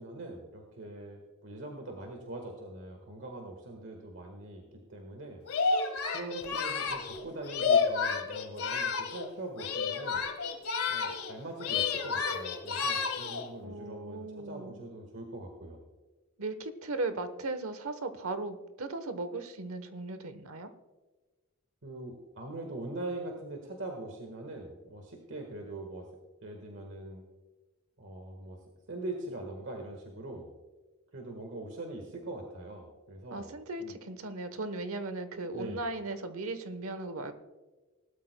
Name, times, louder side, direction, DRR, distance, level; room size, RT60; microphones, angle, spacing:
voice 1, 0.0-5.4 6.1-10.3 10.9-15.8 21.8-26.1 26.4-27.2 28.0-28.6 28.9-30.5 31.1-33.5 33.8-34.0 35.5-35.8, right 2 dB, 60° right, 2 dB, 1.5 m, -42 dB
Singing, 5.5-9.3 9.6-11.3 11.6-13.5, left 5 dB, 85° left, 1.5 m, -30 dB
voice 2, 13.6-14.8 16.4-20.7 33.3-37.3, right 2 dB, 75° right, 10 dB, 1.0 m, -37 dB
19.0 x 12.5 x 2.2 m, 1.2 s
head